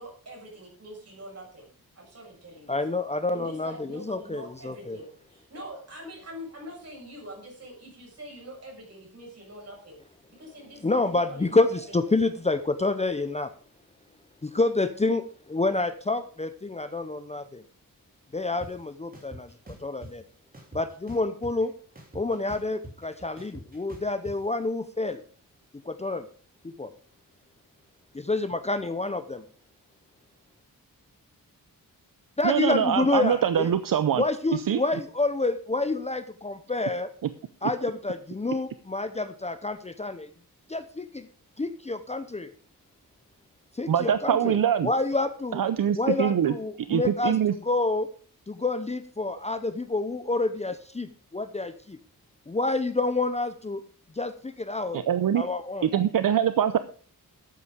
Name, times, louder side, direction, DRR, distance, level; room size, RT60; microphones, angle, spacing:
voice 1, 0.0-1.7 2.0-2.8 3.3-10.0 10.3-11.8, right 1 dB, 45° right, -1 dB, 7.2 m, -44 dB
voice 2, 2.7-5.0 10.8-13.5 14.4-17.6 18.3-20.2 20.7-21.7 22.1-25.2 25.8-26.3 26.6-26.9 28.1-29.4 32.4-33.7 34.2-37.1 37.6-40.3 40.7-41.3 41.6-42.5 43.7-45.6 46.0-47.4 47.6-48.1 48.5-52.0 52.5-53.8 54.1-55.0 55.4-55.9, left 2 dB, 20° left, 10 dB, 0.7 m, -28 dB
sound 1, 18.6-18.7 19.1-20.1 20.5-21.6 22.0-24.4, right 1 dB, 25° right, 3.3 m, -44 dB
voice 3, 32.4-34.2 34.5-34.8 43.9-44.9 45.5-47.5 54.9-55.4 55.8-56.8, right 9 dB, 70° right, 13 dB, 0.7 m, -24 dB
12.5 x 8.4 x 5.1 m, 0.43 s
wide cardioid pair, 150°, 35 cm